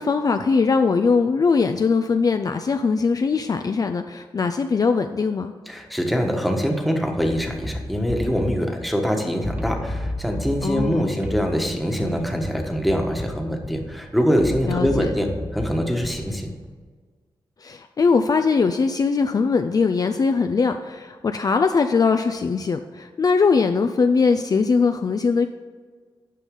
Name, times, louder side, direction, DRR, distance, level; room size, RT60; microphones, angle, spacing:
voice 1, 0.0-5.5 10.6-11.0 14.7-15.1 17.6-25.5, left 4 dB, 45° left, 7 dB, 0.4 m, -21 dB
voice 2, 5.7-16.5, equal, ahead, 2 dB, 1.3 m, -24 dB
sound 1, 7.2-16.7, equal, 20° right, 1.3 m, -33 dB
9.2 x 5.4 x 3.8 m, 1.5 s
cardioid pair, 65°, 9 cm